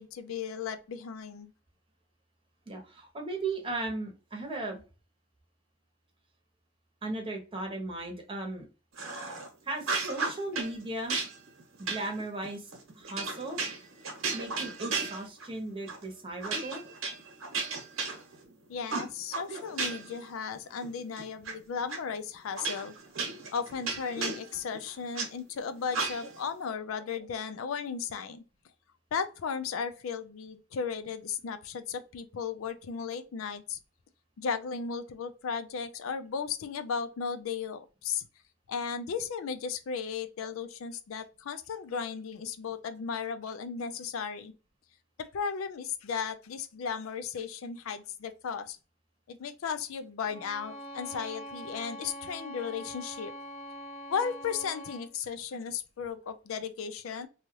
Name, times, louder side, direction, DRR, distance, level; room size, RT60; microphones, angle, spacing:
voice 1, 0.0-1.5 18.7-22.9 23.5-28.4 29.1-33.8 34.4-38.3 38.7-44.5 45.2-48.8 49.3-53.3 54.1-57.3, left 6 dB, 80° left, 0.4 m, -35 dB
voice 2, 2.7-4.8 7.0-8.7 9.6-11.2 11.8-12.7 12.9-13.6 14.3-16.8, right 2 dB, 25° right, 0.8 m, -36 dB
sound 1, 9.0-9.5 9.8-10.7 11.1-15.6 15.9-16.1 16.4-18.5 18.9-20.2 20.5-21.5 21.9-22.0 22.6-25.3 25.9-26.5, right 4 dB, 80° right, 1.0 m, -34 dB
Bowed string instrument, 50.3-55.1, equal, 30° left, 0.8 m, -43 dB
2.7 x 2.3 x 3.0 m
head